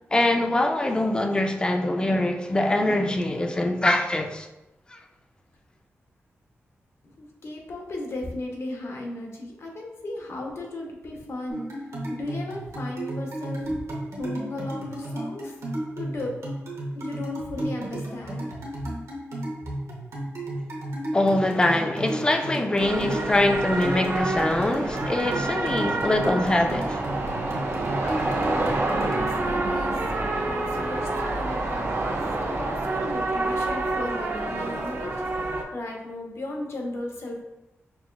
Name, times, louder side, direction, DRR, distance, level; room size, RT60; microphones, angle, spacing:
voice 1, 0.1-4.5 4.9-5.0 21.1-27.0, left 1 dB, 20° left, 0.4 m, -23 dB
voice 2, 7.2-11.7 12.1-13.8 14.1-15.5 16.0-16.4 16.9-18.5 28.0-35.1 35.7-37.4, left 2 dB, 65° left, 0.8 m, -36 dB
sound 1, 11.5-29.3, right 1 dB, 80° right, 0.9 m, -34 dB
sound 2, 22.8-35.6, right 2 dB, 60° right, 0.5 m, -28 dB
5.9 x 2.3 x 2.3 m
wide cardioid pair, 110°, 5 cm